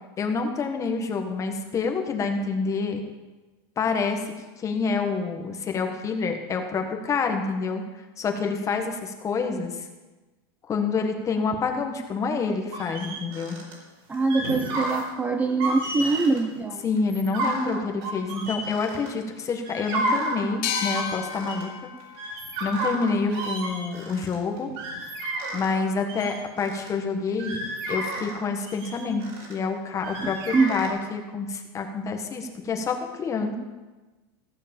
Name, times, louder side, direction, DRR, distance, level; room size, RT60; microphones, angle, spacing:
voice 1, 0.2-3.0 3.8-7.8 8.2-9.9 10.7-13.6 16.8-21.9 22.3-22.4 22.6-24.7 25.5-27.6 27.9-29.2 29.5-33.5, left 4 dB, 25° left, 4 dB, 1.5 m, -27 dB
sound 1, 12.7-13.7 14.1-15.1 15.5-16.4 17.0-19.3 19.6-21.6 22.0-25.8 26.1-26.9 27.3-29.5 30.0-30.9, right 1 dB, 70° right, 5.0 m, -31 dB
voice 2, 14.1-16.9 30.2-30.8, right 3 dB, 10° right, 5 dB, 0.6 m, -24 dB
sound 2, 20.6-24.0, left 10 dB, 65° left, 1.0 m, -35 dB
15.0 x 6.4 x 7.2 m, 1.2 s
supercardioid pair, 145°, 13 cm